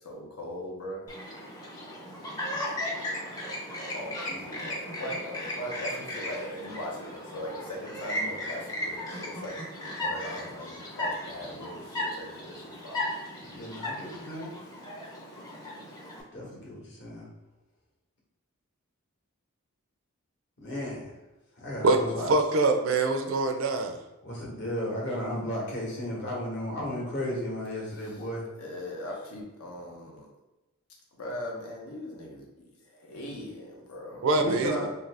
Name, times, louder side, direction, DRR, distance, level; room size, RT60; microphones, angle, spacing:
voice 1, 0.0-1.0 3.9-9.6 10.0-13.0 28.0-28.2 28.6-30.3 31.2-34.3, left 1 dB, 85° left, -1 dB, 0.8 m, -40 dB
Chirp tweet, 1.1-16.2, left 1 dB, 15° left, 0.5 m, -36 dB
voice 2, 13.5-14.5 16.3-17.3 20.6-21.1 21.6-22.3 24.2-28.4 34.4-35.1, equal, 50° left, -3 dB, 1.0 m, -34 dB
voice 3, 22.3-24.0 34.2-34.7, right 3 dB, 65° right, 5 dB, 0.4 m, -24 dB
2.7 x 2.5 x 3.3 m, 1.0 s
head